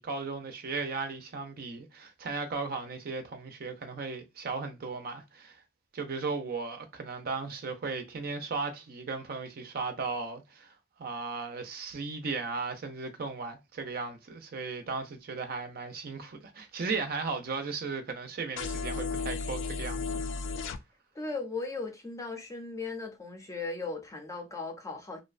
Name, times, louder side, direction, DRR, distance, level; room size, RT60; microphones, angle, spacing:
voice 1, 0.0-5.6 5.9-10.7 11.0-20.3, right 4 dB, 55° right, 0.5 m, -36 dB
sound 1, 18.6-20.8, left 4 dB, 80° left, 0.3 m, -34 dB
voice 2, 21.1-25.2, left 3 dB, 15° left, 0.5 m, -37 dB
2.6 x 2.1 x 2.4 m
head